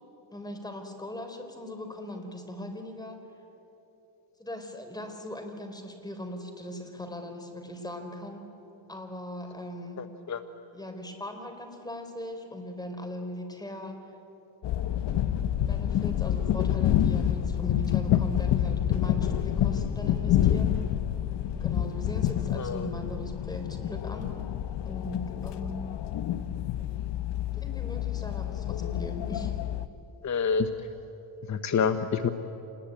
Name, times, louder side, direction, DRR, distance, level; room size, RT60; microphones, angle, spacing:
voice 1, 0.3-3.2 4.4-8.5 8.9-10.0 10.7-14.0 15.7-20.8 21.6-24.3 24.9-25.9 27.6-29.6, left 1 dB, 10° left, 5 dB, 3.6 m, -39 dB
voice 2, 10.0-10.4 22.6-22.9 30.2-30.7 31.5-32.3, left 6 dB, 40° left, 8 dB, 1.0 m, -27 dB
sound 1, 14.6-29.9, left 11 dB, 65° left, 1.0 m, -28 dB
26.5 x 20.5 x 9.1 m, 3.0 s
cardioid pair, 115°, 45 cm